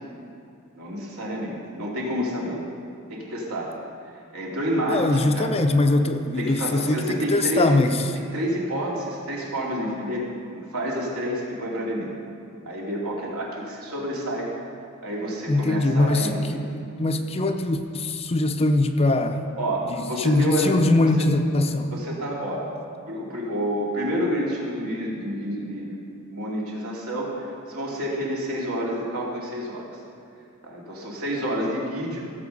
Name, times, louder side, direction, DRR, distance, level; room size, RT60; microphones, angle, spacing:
voice 1, 0.8-2.6 3.1-3.7 4.3-5.6 6.2-7.8 8.3-10.2 10.5-12.1 12.6-14.5 15.0-16.6 19.6-20.7 21.9-22.7 23.1-26.0 26.3-29.9 30.6-32.2, equal, 75° right, -4 dB, 2.7 m, -29 dB
voice 2, 4.9-8.0 15.5-19.5 19.8-21.9, left 2 dB, 25° left, 6 dB, 0.6 m, -22 dB
16.5 x 7.4 x 5.4 m, 2.5 s
head